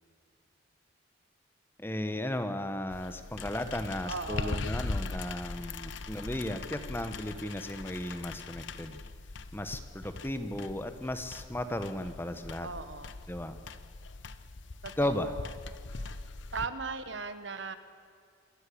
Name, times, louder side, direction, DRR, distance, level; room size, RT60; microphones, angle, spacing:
voice 1, 1.8-9.0 9.5-12.7 13.3-13.5 15.0-15.3, left 1 dB, 10° left, 9 dB, 1.1 m, -35 dB
sound 1, 2.9-16.7, left 3 dB, 65° left, 0.9 m, -41 dB
voice 2, 4.0-4.7 12.6-13.1 14.8-15.5 15.9-16.2 16.5-17.8, right 4 dB, 65° right, 11 dB, 1.3 m, -38 dB
27.0 x 13.5 x 8.5 m, 2.3 s
head